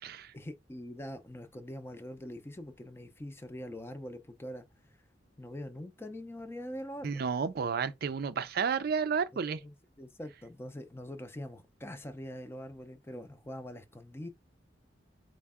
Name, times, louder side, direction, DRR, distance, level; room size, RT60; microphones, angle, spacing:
voice 1, 0.3-4.7 5.4-7.3 9.3-14.3, left 1 dB, 15° left, 0.5 m, -43 dB
voice 2, 7.0-9.6, right 6 dB, 55° right, 0.4 m, -31 dB
4.4 x 2.1 x 3.5 m
head